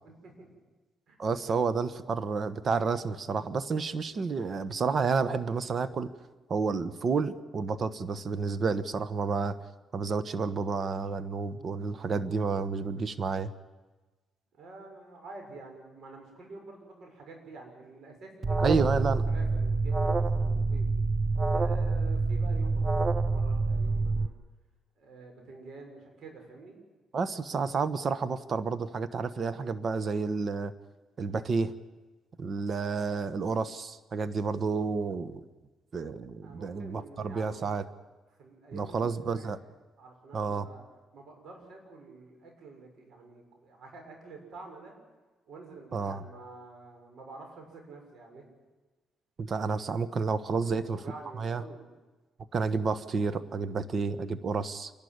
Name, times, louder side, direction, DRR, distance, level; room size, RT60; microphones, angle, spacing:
voice 1, 0.0-0.6 1.1-1.2 1.4-1.6 14.6-20.9 21.5-24.3 25.0-26.8 36.4-37.8 38.4-39.5 40.0-40.8 41.1-45.0 45.5-48.4 50.5-51.9, right 3 dB, 65° right, 3 dB, 6.7 m, -48 dB
voice 2, 1.2-6.1 6.5-9.6 9.9-13.5 18.6-19.2 27.1-30.7 31.2-31.7 32.4-35.4 35.9-37.9 38.7-39.6 40.3-40.7 45.9-46.2 49.4-51.0 51.4-51.6 52.5-54.9, right 4 dB, 45° right, 13 dB, 1.3 m, -30 dB
Alarm, 18.4-24.3, right 3 dB, 30° right, 0.8 m, -27 dB
28.0 x 12.0 x 9.7 m, 1.2 s
cardioid pair, 90°, 0 cm